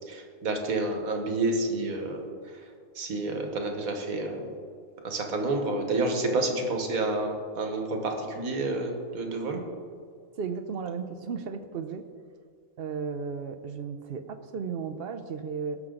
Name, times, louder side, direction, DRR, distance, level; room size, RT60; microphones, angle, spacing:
voice 1, 0.1-2.3 2.9-4.5 5.0-9.6, right 2 dB, 80° right, 3 dB, 1.7 m, -29 dB
voice 2, 10.4-12.1 12.8-15.8, right 5 dB, 55° right, 9 dB, 0.7 m, -34 dB
18.0 x 6.1 x 3.8 m, 2.2 s
omnidirectional pair, 1.5 m